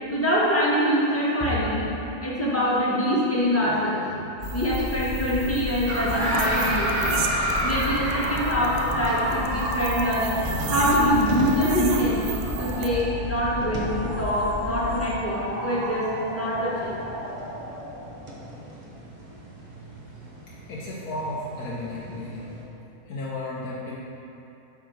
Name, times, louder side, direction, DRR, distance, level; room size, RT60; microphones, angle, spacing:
voice 1, 0.1-1.9 2.2-4.2 4.5-7.2 7.6-10.4 10.7-12.2 12.6-17.0, equal, 10° left, -7 dB, 1.3 m, -24 dB
sound 1, 4.4-15.1, left 2 dB, 35° left, 0.8 m, -33 dB
sound 2, 4.4-12.9, right 7 dB, 70° right, 0.6 m, -37 dB
sound 3, 5.9-22.6, right 1 dB, 30° right, 1.0 m, -31 dB
voice 2, 20.7-22.5 23.1-24.0, left 1 dB, 70° left, -6 dB, 1.3 m, -33 dB
8.4 x 3.6 x 6.3 m, 3.0 s
omnidirectional pair, 1.7 m